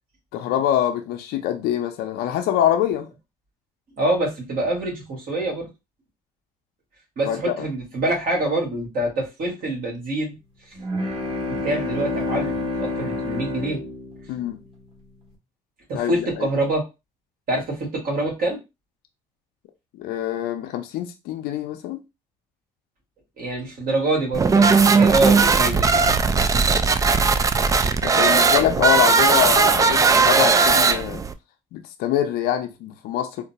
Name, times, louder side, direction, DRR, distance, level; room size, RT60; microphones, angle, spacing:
voice 1, 0.3-3.1 7.3-7.7 14.3-14.6 15.9-16.5 20.0-22.0 28.0-31.2 31.7-33.4, left 11 dB, 80° left, 0.5 m, -24 dB
voice 2, 4.0-5.7 7.2-10.3 11.5-13.8 15.9-16.8 17.5-18.6 23.4-26.1, right 2 dB, 65° right, 1.8 m, -25 dB
sound 1, 10.8-14.8, left 2 dB, 35° right, 1.4 m, -28 dB
sound 2, 24.3-31.3, right 4 dB, 20° right, 0.3 m, -17 dB
3.8 x 2.2 x 2.8 m
supercardioid pair, 80°, 16 cm